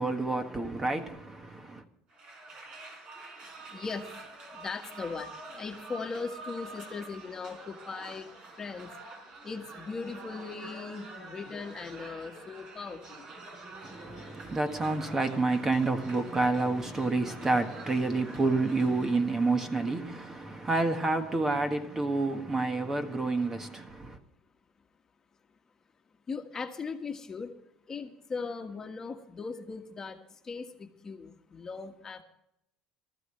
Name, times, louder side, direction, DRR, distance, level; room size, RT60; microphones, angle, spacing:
voice 1, 0.0-1.8 13.8-24.2, right 3 dB, 20° right, 1.5 m, -29 dB
sound 1, 2.1-19.1, right 2 dB, 45° right, 4.5 m, -47 dB
voice 2, 3.7-8.9 9.4-13.3 26.3-27.5 27.9-32.2, left 4 dB, 25° left, 1.5 m, -39 dB
19.0 x 13.5 x 3.2 m
cardioid pair, 120°, 2 cm